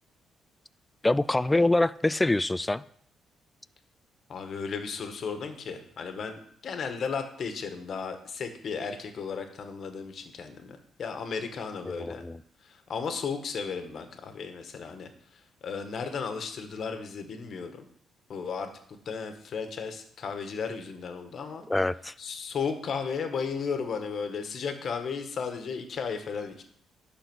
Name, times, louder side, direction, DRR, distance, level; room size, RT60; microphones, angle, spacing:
voice 1, 1.0-2.8 12.0-12.4 21.7-22.1, left 2 dB, 15° left, 18 dB, 0.3 m, -25 dB
voice 2, 4.3-12.3 12.6-17.9 18.3-18.7 19.0-21.7 22.2-26.6, left 5 dB, 55° left, 7 dB, 1.4 m, -35 dB
11.0 x 4.1 x 6.2 m, 0.65 s
cardioid pair, 90°, 0 cm